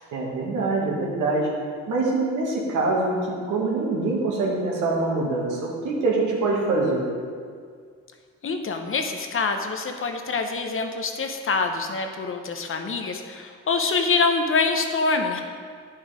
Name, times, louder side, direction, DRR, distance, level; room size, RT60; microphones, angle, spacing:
voice 1, 0.1-1.5 1.9-7.0, right 3 dB, 85° right, -3 dB, 2.1 m, -24 dB
voice 2, 8.4-15.4, left 4 dB, 45° left, 5 dB, 0.9 m, -25 dB
9.4 x 5.6 x 5.2 m, 2.1 s
cardioid pair, 90°, 30 cm